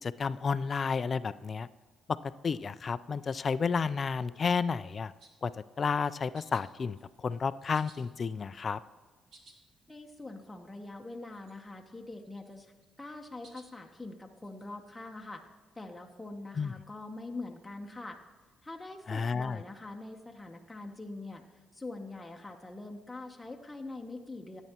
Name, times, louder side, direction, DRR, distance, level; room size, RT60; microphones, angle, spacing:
voice 1, 0.0-1.7 2.1-2.2 2.4-5.1 5.4-5.5 5.8-8.8 16.6-16.7 19.1-19.6, left 5 dB, 40° left, 16 dB, 0.3 m, -31 dB
sound 1, 5.2-5.5 6.3-6.7 7.0-7.4 7.7-8.7 9.1-9.6 9.9-10.0 10.2-10.3 10.7-11.0 11.3-11.8 12.2-12.9 13.4-13.7 14.4-14.7, right 3 dB, 70° right, 1.7 m, -59 dB
voice 2, 9.9-15.4 15.7-18.2 18.6-24.6, left 2 dB, 10° left, 1 dB, 0.8 m, -44 dB
14.0 x 9.0 x 2.9 m, 1.3 s
cardioid pair, 90°, 0 cm